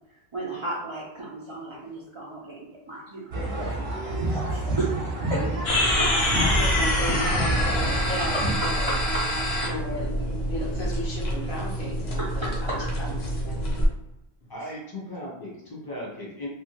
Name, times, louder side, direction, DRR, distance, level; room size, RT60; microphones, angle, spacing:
voice 1, 0.3-4.9 5.3-6.1 8.3-8.4 8.9-9.3 9.6-9.7 12.2-12.9, right 2 dB, 40° right, -6 dB, 0.4 m, -34 dB
sound 1, 3.3-8.5, right 1 dB, 65° right, 0.9 m, -28 dB
sound 2, 5.7-13.9, equal, 80° left, 1.0 m, -26 dB
voice 2, 6.3-8.3 8.6-9.0 9.7-13.2 13.4-13.7, equal, 60° left, -5 dB, 1.1 m, -35 dB
voice 3, 14.5-16.5, left 1 dB, 25° left, -4 dB, 0.7 m, -37 dB
2.8 x 2.1 x 2.8 m, 0.89 s
omnidirectional pair, 1.0 m